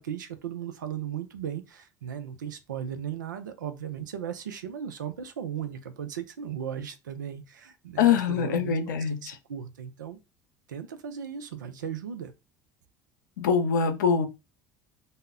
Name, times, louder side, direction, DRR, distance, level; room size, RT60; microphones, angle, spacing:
voice 1, 0.0-9.0 9.5-10.2 10.7-12.3, right 8 dB, 90° right, 0.4 m, -36 dB
voice 2, 8.0-9.3 13.4-14.3, left 7 dB, 85° left, 0.5 m, -24 dB
2.1 x 2.0 x 3.5 m
hypercardioid pair, 70°, 10 cm